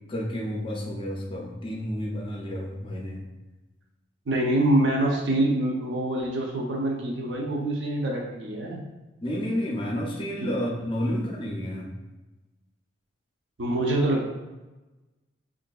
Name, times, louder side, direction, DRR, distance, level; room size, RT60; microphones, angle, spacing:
voice 1, 0.1-3.2 9.2-11.9, equal, 25° left, 0 dB, 0.4 m, -30 dB
voice 2, 4.3-8.8 10.4-10.5 11.0-11.2 13.6-14.3, right 1 dB, 60° right, -1 dB, 0.6 m, -25 dB
3.7 x 2.5 x 2.3 m, 1.1 s
head